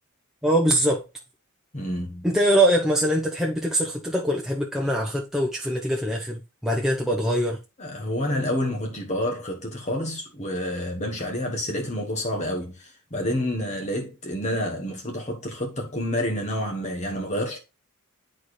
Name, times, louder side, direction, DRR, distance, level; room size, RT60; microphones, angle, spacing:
voice 1, 0.4-1.0 2.2-7.6, right 1 dB, ahead, 0.8 m, -23 dB
voice 2, 1.7-2.3 7.8-17.6, left 1 dB, 30° left, 1.2 m, -29 dB
10.5 x 4.2 x 3.2 m
head